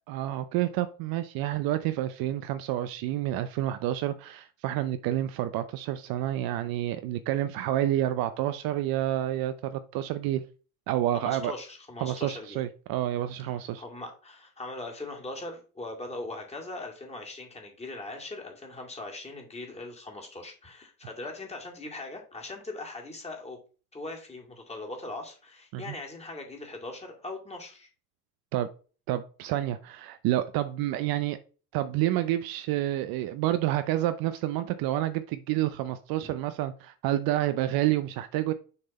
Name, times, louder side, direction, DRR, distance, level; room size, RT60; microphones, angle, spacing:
voice 1, 0.1-10.5 10.9-11.5 12.0-13.8 25.7-26.0 28.5-28.7 29.1-31.4 31.7-38.5, right 13 dB, 50° right, 11 dB, 0.7 m, -29 dB
voice 2, 11.1-12.6 13.8-23.6 23.9-27.9 36.2-36.3, left 2 dB, 15° left, 1 dB, 2.2 m, -40 dB
6.7 x 3.6 x 4.2 m, 0.37 s
hypercardioid pair, 95°, 46 cm